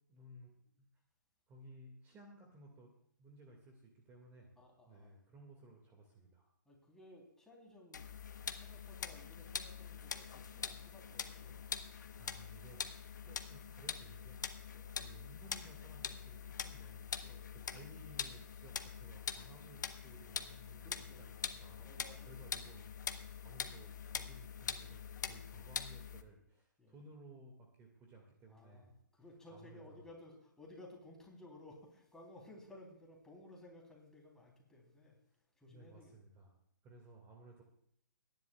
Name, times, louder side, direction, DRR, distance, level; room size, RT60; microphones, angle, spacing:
voice 1, 0.1-0.9 1.5-2.9 3.2-4.5 4.9-6.5 11.6-11.8 12.1-12.9 13.2-14.4 14.9-17.1 17.7-21.8 22.3-22.9 23.4-28.9 29.5-30.1 35.7-36.6 36.8-37.6, right 1 dB, 20° right, 1 dB, 2.0 m, -58 dB
voice 2, 4.6-5.2 6.7-8.1 8.5-11.6 13.2-13.4 14.7-14.9 17.2-17.5 20.8-21.5 21.8-22.5 26.8-27.0 28.5-35.2 35.6-36.1, left 1 dB, 5° left, -1 dB, 3.4 m, -57 dB
sound 1, 7.9-26.2, left 7 dB, 65° left, 1.1 m, -44 dB
30.0 x 10.5 x 2.4 m, 0.72 s
figure-of-eight pair, 130°, 10 cm